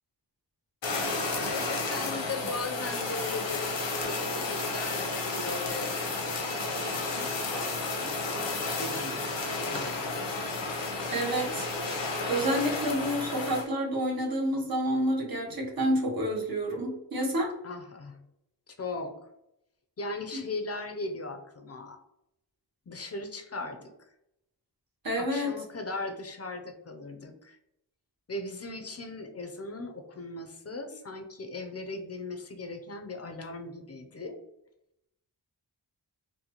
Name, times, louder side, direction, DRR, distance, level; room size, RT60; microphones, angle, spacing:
Fire, 0.8-13.6, left 3 dB, 90° left, 0.8 m, -32 dB
voice 1, 1.5-10.3 17.6-18.2 18.7-19.1 20.0-22.0 22.9-23.9 25.2-27.6 28.3-34.4, left 3 dB, 35° left, 5 dB, 0.5 m, -39 dB
voice 2, 11.1-11.7 12.3-17.5 25.0-25.5, equal, 55° right, 0 dB, 1.0 m, -29 dB
4.0 x 2.1 x 2.8 m, 0.83 s
wide cardioid pair, 80°, 43 cm